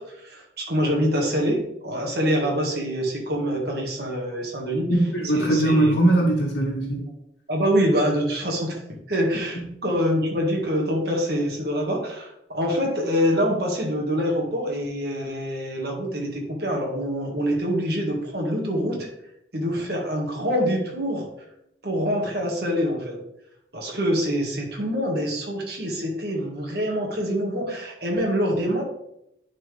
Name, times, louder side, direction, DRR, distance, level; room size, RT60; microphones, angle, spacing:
voice 1, 0.0-4.9 5.3-6.0 7.5-19.1 19.5-21.3 21.8-23.2 23.7-28.8, equal, 60° right, -1 dB, 2.0 m, -25 dB
voice 2, 4.9-7.0 9.5-9.7, right 1 dB, 80° left, -5 dB, 1.5 m, -20 dB
10.5 x 4.5 x 3.5 m, 0.79 s
head